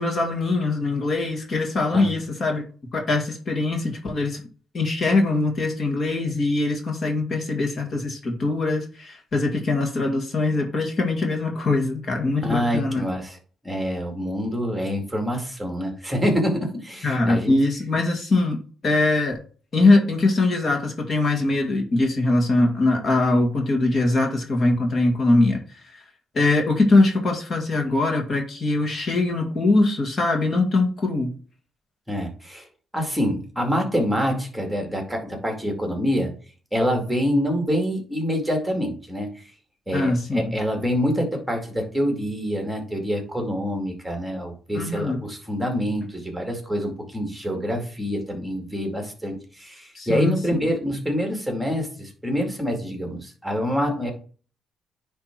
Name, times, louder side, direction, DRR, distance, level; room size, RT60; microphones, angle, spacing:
voice 1, 0.0-2.6 2.9-4.4 4.7-13.0 17.0-19.4 19.7-26.0 26.3-31.3 39.9-40.5 44.7-45.2 50.0-50.6, left 2 dB, 45° left, 2 dB, 2.1 m, -22 dB
voice 2, 12.4-13.4 13.6-17.5 32.1-32.6 32.9-36.3 36.7-39.3 39.9-54.1, equal, 5° right, 2 dB, 2.2 m, -26 dB
9.8 x 3.5 x 4.6 m, 0.40 s
cardioid pair, 90°, 0 cm